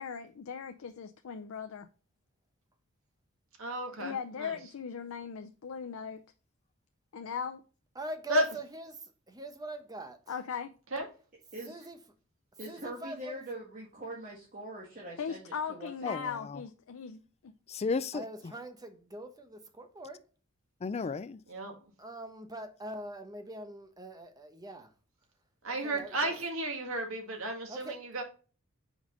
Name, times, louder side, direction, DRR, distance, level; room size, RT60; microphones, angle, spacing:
voice 1, 0.0-1.9 4.0-6.2 7.1-7.6 10.3-10.7 15.2-17.5, left 6 dB, 85° left, 0.5 m, -39 dB
voice 2, 3.6-4.6 8.3-8.5 10.9-11.1 21.5-21.8 25.6-28.2, right 1 dB, 85° right, 1.8 m, -33 dB
voice 3, 7.9-10.2 11.7-12.0 12.7-13.4 18.1-20.2 22.0-24.9 25.7-26.3 27.7-28.0, right 1 dB, 20° right, 0.9 m, -43 dB
voice 4, 11.5-11.9 12.6-16.2, right 1 dB, 40° right, 1.6 m, -43 dB
voice 5, 16.0-16.6 17.7-18.5 20.8-21.4, left 4 dB, 30° left, 0.4 m, -34 dB
5.3 x 4.9 x 3.7 m
head